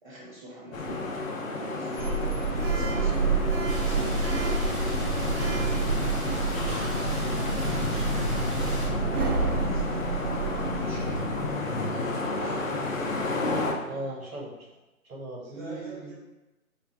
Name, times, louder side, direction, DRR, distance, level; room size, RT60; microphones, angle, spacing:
voice 1, 0.0-1.0 1.6-2.3 2.7-3.3 3.8-4.3 4.7-6.0 6.3-11.2 12.1-12.7 13.0-14.0 15.5-16.1, right 1 dB, 35° right, -9 dB, 0.7 m, -44 dB
sound 1, 0.7-13.7, left 2 dB, 65° left, 0.6 m, -31 dB
Sliding door, 2.0-11.5, right 4 dB, 85° right, 0.7 m, -29 dB
sound 2, 3.7-8.9, equal, ahead, 0.4 m, -38 dB
voice 2, 13.9-14.7 15.0-16.1, right 2 dB, 70° right, -2 dB, 1.1 m, -38 dB
2.5 x 2.4 x 3.2 m, 0.99 s
figure-of-eight pair, 160°, 44 cm